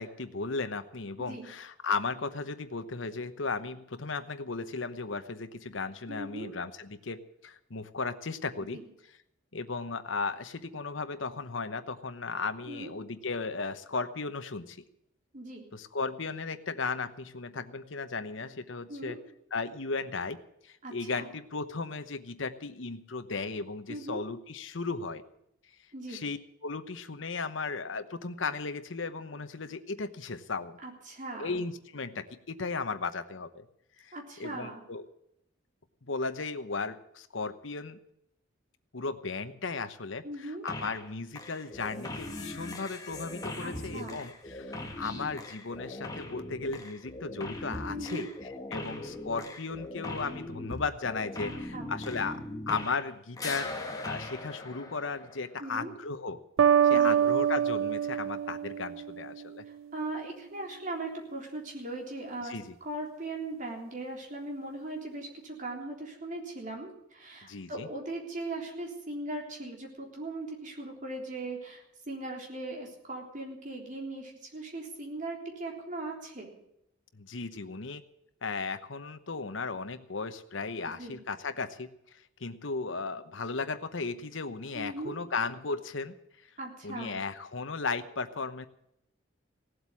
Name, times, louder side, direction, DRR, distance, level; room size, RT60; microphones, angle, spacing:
voice 1, 0.0-8.8 9.5-14.8 15.7-19.2 19.5-20.4 20.6-25.2 26.1-30.8 31.4-33.6 34.0-35.0 36.1-38.0 38.9-53.7 54.0-56.4 56.8-59.6 62.4-62.7 67.4-67.9 77.1-78.0 78.4-81.9 82.4-86.2 86.8-88.7, left 4 dB, 70° left, 10 dB, 1.0 m, -36 dB
voice 2, 1.2-1.5 6.1-6.5 8.7-8.9 12.7-12.9 15.3-15.7 18.9-19.2 20.8-21.3 23.9-24.2 25.9-26.2 30.8-31.6 34.1-34.8 40.2-40.7 43.6-44.2 47.9-48.3 51.4-51.9 55.6-55.9 56.9-57.2 59.9-62.6 62.8-76.5 81.0-81.2 84.7-85.2 86.6-87.2, right 2 dB, 40° right, 1 dB, 3.5 m, -39 dB
sound 1, 40.7-41.1 41.4-53.1 53.4-55.6, left 2 dB, 20° left, 1.8 m, -40 dB
sound 2, 56.6-59.4, right 9 dB, 85° right, 0.5 m, -25 dB
17.5 x 8.0 x 9.8 m, 0.79 s
head